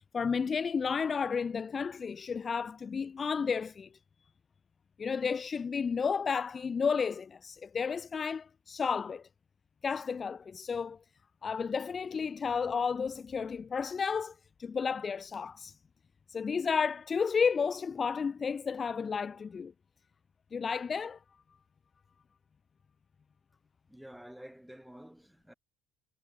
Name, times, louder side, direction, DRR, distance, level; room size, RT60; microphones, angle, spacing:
voice 1, 0.0-3.9 5.0-9.2 9.8-11.0 11.4-14.3 14.6-15.7 16.3-19.7 20.5-21.2, left 6 dB, 35° left, 0.3 m, -32 dB
voice 2, 23.9-25.5, equal, 5° right, 7.8 m, -50 dB
hypercardioid pair, 60°, 0 cm